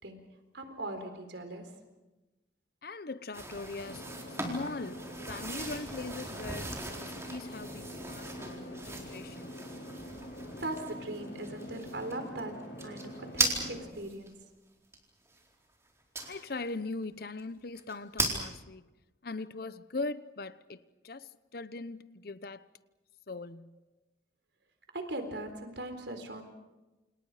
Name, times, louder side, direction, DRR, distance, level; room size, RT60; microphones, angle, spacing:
voice 1, 0.0-1.8 10.6-14.4 24.9-26.4, right 1 dB, 80° right, 4.1 m, -40 dB
voice 2, 2.8-4.0 4.5-9.6 16.2-18.9 19.2-22.7 23.3-23.7, left 3 dB, 55° left, 0.9 m, -40 dB
sound 1, 3.3-14.3 14.9-15.0 16.1-16.6 17.0-17.1 17.4-17.5 17.7-18.4, right 2 dB, 15° right, 4.3 m, -37 dB
sound 2, 3.8-13.9, equal, 80° left, 7.0 m, -45 dB
29.0 x 28.5 x 5.0 m
head